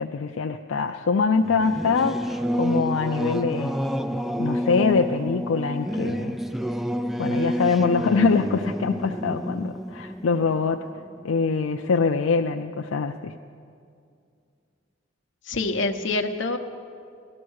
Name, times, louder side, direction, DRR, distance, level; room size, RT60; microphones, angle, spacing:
voice 1, 0.0-3.8 4.4-6.4 7.2-10.8 11.2-13.3, left 5 dB, 85° left, 5 dB, 0.5 m, -24 dB
Singing / Musical instrument, 1.4-11.5, equal, ahead, 0.3 m, -29 dB
voice 2, 15.5-16.6, left 2 dB, 65° left, 6 dB, 0.9 m, -26 dB
15.5 x 12.0 x 6.4 m, 2.4 s
head